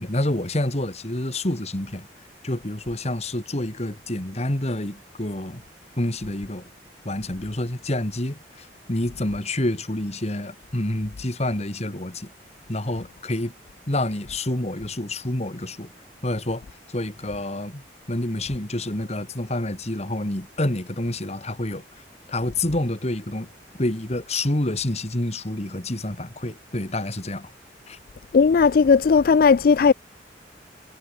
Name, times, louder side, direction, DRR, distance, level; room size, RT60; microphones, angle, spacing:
voice 1, 0.0-2.1 2.4-5.6 6.0-6.6 7.0-12.3 12.7-13.5 13.9-15.9 16.2-16.6 16.9-21.8 22.3-23.5 23.8-27.5 27.9-28.0, left 1 dB, 40° left, 2.5 m, -28 dB
voice 2, 28.3-29.9, left 5 dB, 55° left, 0.4 m, -16 dB
head